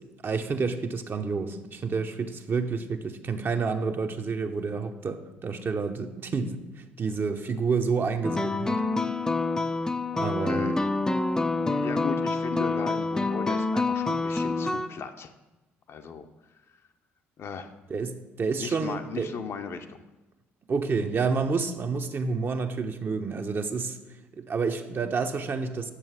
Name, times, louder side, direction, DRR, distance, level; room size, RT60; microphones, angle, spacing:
voice 1, 0.0-8.9 10.1-10.7 17.9-19.3 20.7-24.0 24.3-25.9, right 4 dB, 35° right, 6 dB, 0.9 m, -29 dB
sound 1, 8.2-14.9, left 3 dB, 10° left, 0.6 m, -27 dB
voice 2, 10.4-10.8 11.8-15.3 15.9-16.3 17.4-17.7 18.6-20.0, left 5 dB, 45° left, 6 dB, 0.8 m, -36 dB
10.0 x 7.1 x 4.9 m, 1.1 s
figure-of-eight pair, 50°, 6 cm